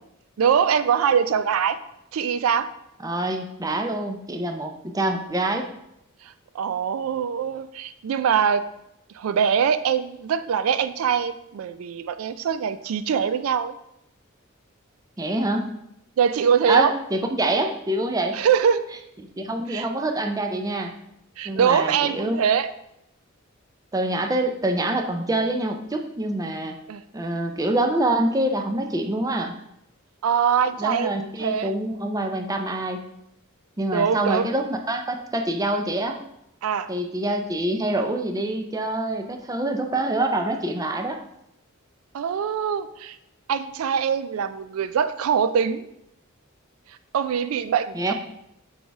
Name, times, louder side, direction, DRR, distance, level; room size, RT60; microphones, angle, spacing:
voice 1, 0.4-1.8 2.1-2.7 6.2-8.6 9.1-13.7 15.2-15.3 16.2-16.9 18.3-18.9 19.7-19.9 21.4-22.7 26.9-27.0 30.2-31.1 31.4-31.7 33.9-34.5 36.6-36.9 42.1-43.2 43.5-45.9 47.1-48.1, right 7 dB, 85° right, 12 dB, 0.4 m, -23 dB
voice 2, 3.0-5.7 15.2-15.7 16.7-18.4 19.4-20.9 21.4-22.4 23.9-26.8 27.1-29.5 30.8-33.0 33.8-36.2 36.9-41.2 47.9-48.1, right 1 dB, 15° right, 4 dB, 0.5 m, -25 dB
6.3 x 3.4 x 4.6 m, 0.80 s
head